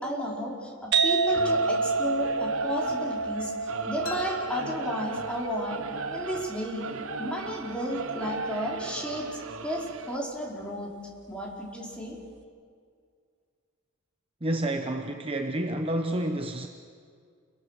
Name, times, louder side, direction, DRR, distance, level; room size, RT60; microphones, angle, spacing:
voice 1, 0.0-3.5 3.8-5.8 6.1-6.9 7.2-9.3 9.6-10.9 11.3-12.2, equal, 5° left, -3 dB, 4.5 m, -33 dB
sound 1, 0.9-8.4, right 4 dB, 55° right, 1.5 m, -30 dB
Singing / Musical instrument, 1.3-10.2, right 5 dB, 80° right, 1.0 m, -37 dB
sound 2, 4.1-5.8, left 5 dB, 80° left, 1.9 m, -44 dB
voice 2, 14.4-16.7, right 1 dB, 25° right, 4 dB, 0.9 m, -29 dB
29.0 x 22.0 x 6.6 m, 2.1 s
head